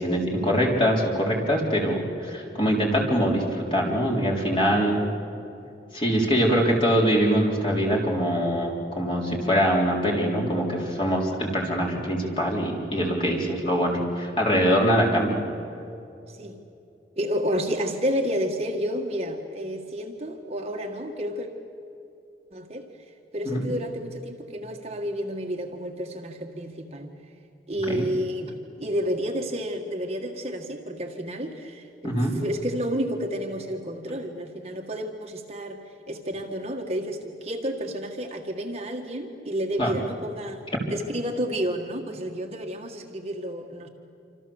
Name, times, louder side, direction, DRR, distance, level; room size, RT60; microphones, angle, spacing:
voice 1, 0.0-5.0 5.9-15.4 23.5-23.6 27.9-28.0 32.0-32.4 39.8-39.9, equal, 30° left, -1 dB, 3.9 m, -23 dB
voice 2, 17.2-21.5 22.5-22.9 23.3-27.1 27.7-40.6 40.9-43.9, equal, 35° right, 2 dB, 1.7 m, -30 dB
27.0 x 26.5 x 7.2 m, 2.6 s
head